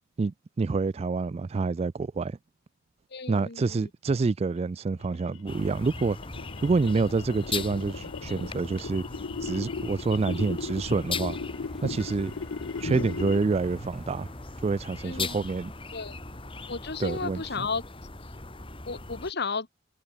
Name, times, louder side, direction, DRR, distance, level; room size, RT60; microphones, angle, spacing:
voice 1, 0.2-2.4 3.3-6.2 6.6-9.0 9.4-11.4 11.8-12.3 12.8-14.3 14.6-15.7 17.0-17.7, right 4 dB, 30° right, 0.3 m, -27 dB
voice 2, 3.1-3.9 11.8-12.0 12.8-13.1 15.0-15.4 15.9-16.2 16.7-17.8 18.9-19.7, left 4 dB, 55° left, 1.4 m, -33 dB
sound 1, 5.0-13.7, left 4 dB, 70° left, 0.6 m, -37 dB
sound 2, 5.5-19.3, left 4 dB, 25° left, 2.6 m, -39 dB
sound 3, 10.3-15.9, equal, 5° right, 4.6 m, -57 dB
head